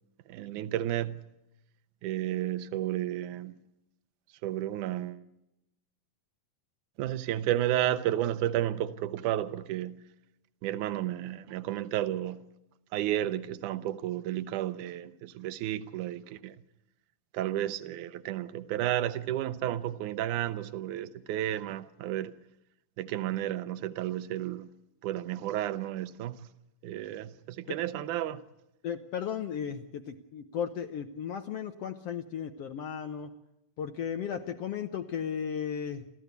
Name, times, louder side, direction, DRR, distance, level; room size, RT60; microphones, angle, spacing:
voice 1, 0.3-1.2 2.0-3.6 4.4-5.2 7.0-10.0 10.6-12.4 12.9-16.6 17.3-22.3 23.0-24.7 25.0-26.5 26.8-28.4, right 12 dB, 75° right, 2.3 m, -32 dB
voice 2, 28.8-33.3 33.8-36.1, left 8 dB, 70° left, 1.5 m, -35 dB
28.5 x 14.0 x 8.2 m
omnidirectional pair, 3.8 m